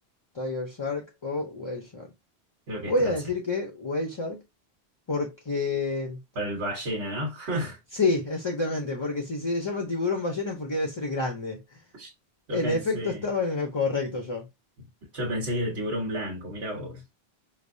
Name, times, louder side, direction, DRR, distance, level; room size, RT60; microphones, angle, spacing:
voice 1, 0.3-2.1 2.9-4.4 5.1-6.2 7.9-11.8 12.5-14.5, left 3 dB, 30° left, 0.6 m, -28 dB
voice 2, 2.7-3.1 6.3-7.8 12.0-12.1 12.5-13.2 15.1-17.0, equal, 80° right, 1.5 m, -31 dB
5.1 x 2.1 x 2.6 m
omnidirectional pair, 1.1 m